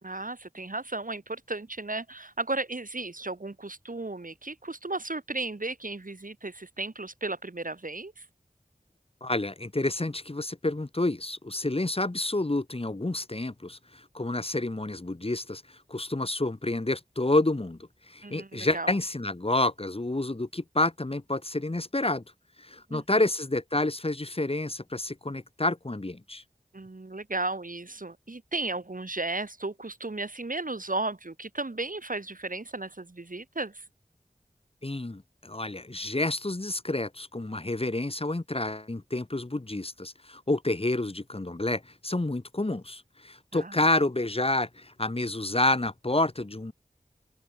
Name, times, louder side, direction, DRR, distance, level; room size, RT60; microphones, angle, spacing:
voice 1, 0.0-8.2 18.2-18.9 22.9-23.0 26.7-33.8 43.5-43.8, right 2 dB, 60° right, 5.0 m, -34 dB
voice 2, 9.2-17.8 18.1-22.2 22.6-26.4 34.8-46.7, left 2 dB, 40° left, 2.0 m, -29 dB
open air
wide cardioid pair, 50°, 16 cm